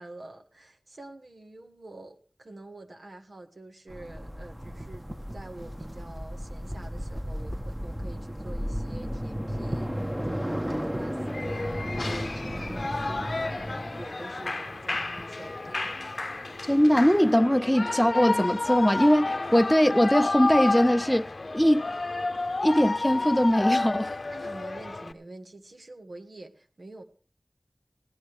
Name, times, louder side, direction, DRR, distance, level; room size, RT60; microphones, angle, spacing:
voice 1, 0.0-13.3 14.0-15.9 24.3-27.0, right 2 dB, 85° right, 1.6 m, -46 dB
sound 1, 3.9-14.0, equal, 10° right, 1.1 m, -34 dB
sound 2, 4.1-17.3, right 1 dB, 45° right, 1.3 m, -47 dB
Shout / Cheering, 11.3-25.1, left 2 dB, 75° left, 0.7 m, -31 dB
voice 2, 16.7-21.3 21.5-21.9 22.6-24.1, equal, 5° left, 0.6 m, -21 dB
16.0 x 11.0 x 4.8 m
wide cardioid pair, 50°, 0 cm